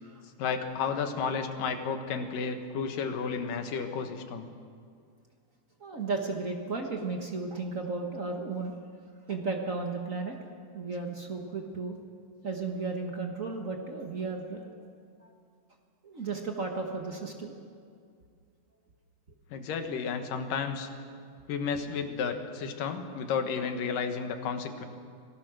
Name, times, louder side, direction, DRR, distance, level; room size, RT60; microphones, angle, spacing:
voice 1, 0.4-4.5 19.5-20.9 21.5-24.9, left 6 dB, 80° left, 6 dB, 3.0 m, -32 dB
voice 2, 5.8-8.7 9.3-10.4 10.7-12.0 12.4-14.8 15.2-15.3 16.0-17.6, right 3 dB, 60° right, 2 dB, 0.8 m, -34 dB
26.0 x 18.5 x 6.3 m, 2.2 s
omnidirectional pair, 3.8 m